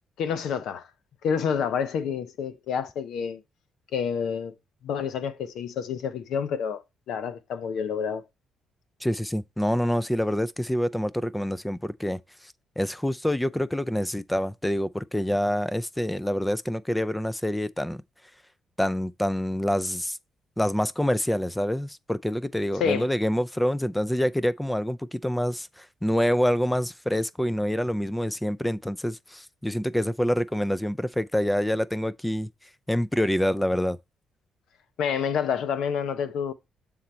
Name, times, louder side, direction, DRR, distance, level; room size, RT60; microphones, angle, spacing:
voice 1, 0.2-0.9 1.2-3.4 3.9-4.5 4.8-6.8 7.1-8.2 22.8-23.1 35.0-36.5, left 7 dB, 75° left, 0.8 m, -28 dB
voice 2, 9.0-12.2 12.8-18.0 18.8-20.2 20.6-32.5 32.9-34.0, equal, 5° left, 0.4 m, -26 dB
7.3 x 3.9 x 4.3 m
cardioid pair, 90°, 0 cm